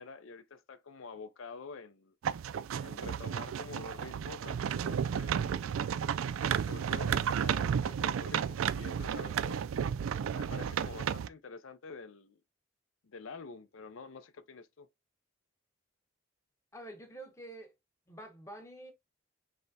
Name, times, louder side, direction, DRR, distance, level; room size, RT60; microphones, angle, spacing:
voice 1, 0.0-2.1 2.8-5.6 6.6-9.6 10.3-12.4 13.0-14.9, left 4 dB, 85° left, 0.5 m, -48 dB
sound 1, 2.2-11.3, right 8 dB, 90° right, 0.3 m, -33 dB
voice 2, 16.7-17.7 18.1-18.9, right 1 dB, 15° left, 1.0 m, -47 dB
3.4 x 3.3 x 4.0 m
head